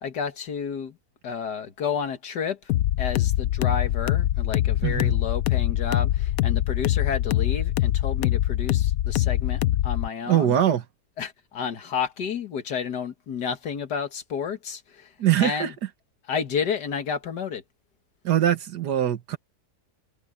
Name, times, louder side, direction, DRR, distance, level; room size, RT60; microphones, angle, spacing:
voice 1, 0.0-1.0 1.2-2.6 3.0-10.6 11.2-15.1 15.4-15.7 16.3-17.6, left 6 dB, 85° left, 2.1 m, -31 dB
sound 1, 2.7-10.1, left 13 dB, 70° left, 0.9 m, -23 dB
voice 2, 4.8-5.2 10.3-10.9 15.2-15.7 18.2-19.4, right 11 dB, 85° right, 1.8 m, -22 dB
omnidirectional pair, 1.7 m